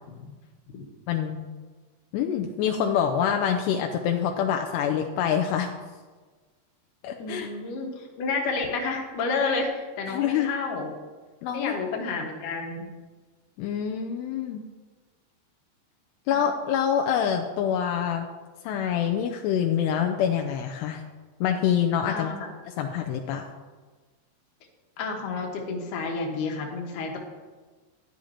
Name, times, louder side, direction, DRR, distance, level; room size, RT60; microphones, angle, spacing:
voice 1, 1.1-1.5 2.1-5.7 7.0-7.5 10.1-10.5 11.4-11.7 13.6-14.6 16.3-18.3 18.6-21.0 21.4-22.3 22.7-23.5, left 8 dB, 80° left, 3 dB, 2.7 m, -26 dB
voice 2, 7.2-11.0 11.5-12.9 16.3-16.4 22.1-22.5 25.0-27.2, left 4 dB, 60° left, 1 dB, 2.6 m, -30 dB
13.0 x 11.0 x 2.9 m, 1.3 s
omnidirectional pair, 4.9 m